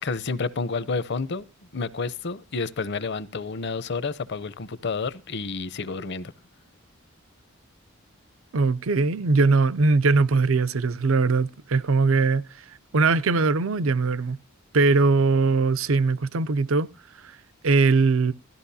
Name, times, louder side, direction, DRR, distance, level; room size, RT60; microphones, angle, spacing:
voice 1, 0.0-1.5 1.7-6.3, left 4 dB, 60° left, 0.7 m, -30 dB
voice 2, 8.5-12.4 12.7-14.4 14.7-16.9 17.6-18.3, right 4 dB, 80° right, 0.6 m, -21 dB
17.0 x 13.5 x 2.8 m
head